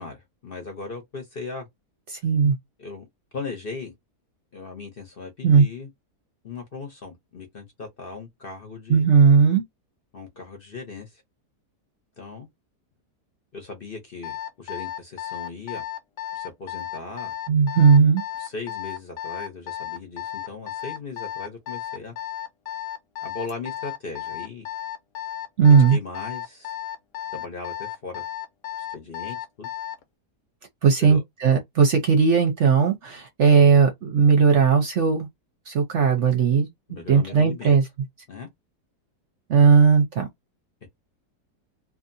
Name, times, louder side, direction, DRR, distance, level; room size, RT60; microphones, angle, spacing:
voice 1, 0.0-1.7 2.8-3.1 3.3-3.9 4.5-5.9 6.4-9.1 10.1-11.2 12.2-12.5 13.5-15.8 16.3-17.3 18.4-22.1 23.2-24.7 25.6-26.8 27.3-28.2 28.9-29.7 31.0-31.2 36.9-37.8 38.3-38.5 40.8-40.9, left 4 dB, 45° left, 0.9 m, -38 dB
voice 2, 2.1-2.6 5.4-5.7 8.9-9.6 17.5-18.2 25.6-26.0 30.8-35.3 35.7-37.8 39.5-40.3, right 6 dB, 60° right, 0.9 m, -17 dB
Alarm, 14.2-30.0, left 11 dB, 85° left, 1.3 m, -34 dB
2.7 x 2.5 x 2.6 m
omnidirectional pair, 1.7 m